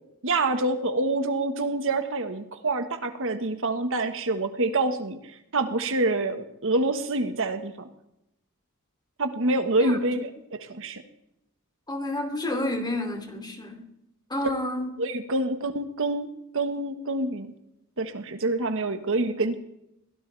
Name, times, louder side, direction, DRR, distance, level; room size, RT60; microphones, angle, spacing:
voice 1, 0.2-5.2 5.5-7.9 9.2-11.0 15.0-16.3 16.5-17.5 18.0-19.6, right 2 dB, 65° right, 7 dB, 1.5 m, -26 dB
voice 2, 11.9-13.8 14.3-14.9, left 1 dB, 20° left, 5 dB, 3.0 m, -30 dB
23.0 x 17.0 x 3.4 m, 0.84 s
head